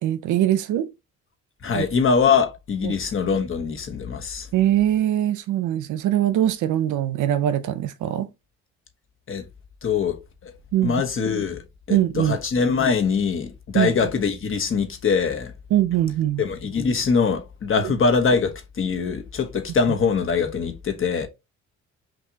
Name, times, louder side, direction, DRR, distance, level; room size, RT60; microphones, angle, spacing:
voice 1, 0.0-0.9 1.7-1.8 2.8-2.9 4.5-8.3 10.7-11.0 11.9-12.4 13.7-13.9 15.7-16.4 17.8-17.9, right 12 dB, 80° right, 0.6 m, -22 dB
voice 2, 1.6-4.5 9.3-9.4 9.8-10.5 10.8-11.6 11.9-15.5 16.4-21.3, left 5 dB, 45° left, 1.1 m, -23 dB
5.8 x 2.6 x 2.8 m
cardioid pair, 90°, 30 cm